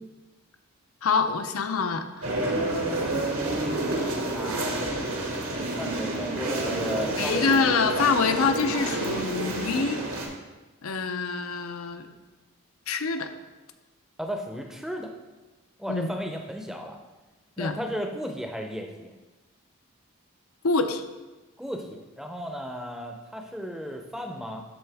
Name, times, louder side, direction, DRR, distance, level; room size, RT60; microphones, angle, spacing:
voice 1, 1.0-2.3 7.2-10.0 10.8-12.1 12.9-13.3 15.9-16.1 17.6-17.7 20.6-21.0, left 4 dB, 80° left, 7 dB, 0.6 m, -25 dB
sound 1, 2.2-10.3, right 2 dB, 75° right, 1.5 m, -29 dB
voice 2, 2.4-8.1 14.2-15.1 15.8-17.0 17.6-19.1 21.6-24.6, equal, ahead, 3 dB, 0.6 m, -36 dB
12.5 x 4.3 x 3.5 m, 1.2 s
head